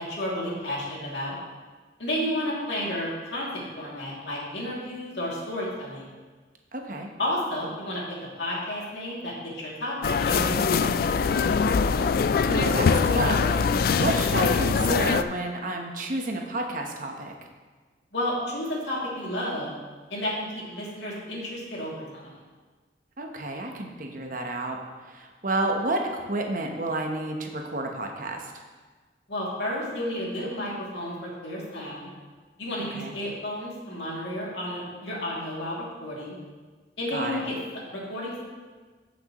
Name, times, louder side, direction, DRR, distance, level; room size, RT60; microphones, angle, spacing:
voice 1, 0.0-1.4 2.0-6.1 7.2-8.0 8.4-11.5 18.1-19.7 20.1-22.3 29.3-32.1 32.6-36.4 37.0-37.6 37.9-38.4, left 1 dB, 75° left, -5 dB, 2.6 m, -32 dB
voice 2, 6.7-7.1 12.5-13.4 13.7-17.3 23.2-24.8 25.1-28.4 33.0-33.1 37.1-37.4, right 2 dB, 50° right, 2 dB, 1.0 m, -30 dB
sound 1, 10.0-15.2, left 5 dB, 55° left, 0.3 m, -23 dB
14.5 x 6.1 x 3.0 m, 1.4 s
head